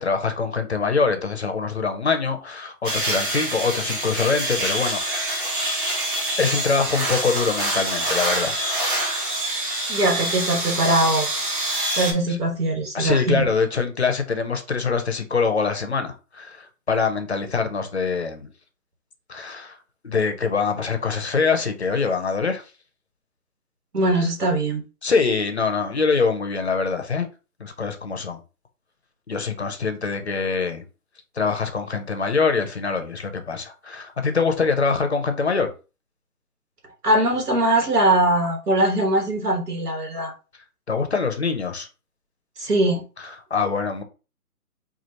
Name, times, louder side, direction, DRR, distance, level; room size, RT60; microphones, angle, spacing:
voice 1, 0.0-5.4 6.4-8.6 12.3-12.4 12.9-18.5 19.3-19.8 20.0-22.6 25.0-27.3 27.6-28.4 29.3-30.8 31.4-35.7 40.9-41.9 43.5-44.0, left 5 dB, 45° left, 0.5 m, -24 dB
sound 1, 2.8-12.1, right 1 dB, 35° right, 1.1 m, -26 dB
voice 2, 9.9-11.3 12.0-13.5 23.9-24.8 37.0-40.3 42.6-43.0, right 1 dB, 75° right, 1.6 m, -21 dB
4.5 x 2.4 x 2.8 m
hypercardioid pair, 165°, 46 cm